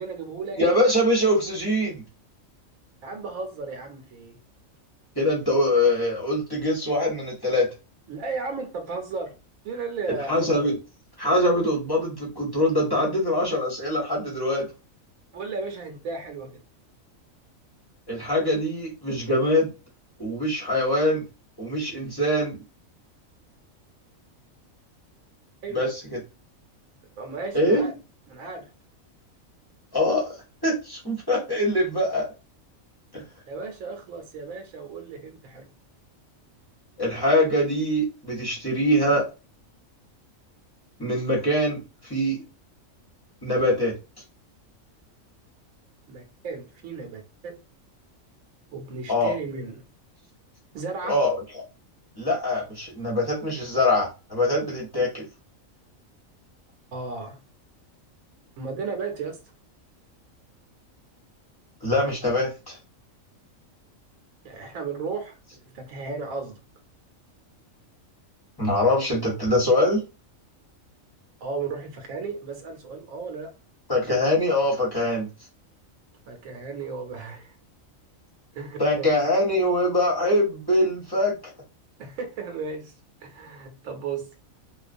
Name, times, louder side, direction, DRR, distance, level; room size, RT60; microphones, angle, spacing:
voice 1, 0.0-0.6 3.0-4.4 8.1-9.4 9.6-10.7 13.5-13.6 15.3-16.6 25.6-25.8 27.2-27.9 28.3-28.7 33.5-35.7 46.1-47.6 48.7-49.8 50.7-51.2 56.9-57.4 58.6-59.4 64.4-66.6 71.4-73.5 76.3-77.6 78.5-79.1 82.0-84.3, right 4 dB, 80° right, 1.1 m, -35 dB
voice 2, 0.6-2.0 5.2-7.7 10.3-10.7 11.2-14.7 18.1-19.7 20.2-21.2 21.6-22.6 25.7-25.9 27.5-27.9 29.9-30.3 30.6-32.3 33.1-33.2 37.0-39.3 41.0-42.4 43.4-43.9 49.1-49.3 51.0-51.4 52.2-55.2 61.8-62.8 68.6-70.0 73.9-75.3 78.8-81.5, left 1 dB, 25° left, 0.6 m, -23 dB
2.4 x 2.3 x 2.4 m
omnidirectional pair, 1.4 m